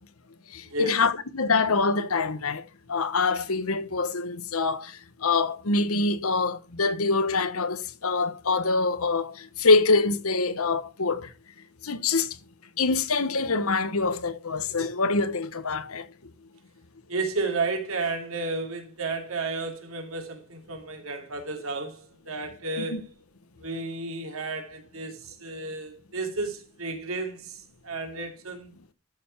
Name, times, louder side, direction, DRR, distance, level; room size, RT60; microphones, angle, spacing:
voice 1, 0.5-11.3 11.8-12.4 12.8-16.1 22.8-23.0, left 3 dB, 85° left, 1.1 m, -25 dB
voice 2, 17.1-23.1 23.6-28.7, right 3 dB, 75° right, 2.8 m, -32 dB
13.0 x 6.8 x 4.5 m
head